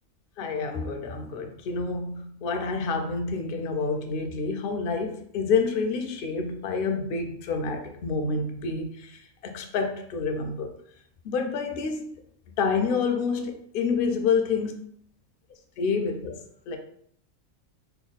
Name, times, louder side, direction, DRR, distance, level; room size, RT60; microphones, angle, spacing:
voice 1, 0.4-10.7 11.2-12.1 12.6-14.7 15.8-16.4 16.7-16.8, left 5 dB, 65° left, 0.5 m, -28 dB
3.4 x 2.1 x 4.0 m
omnidirectional pair, 1.4 m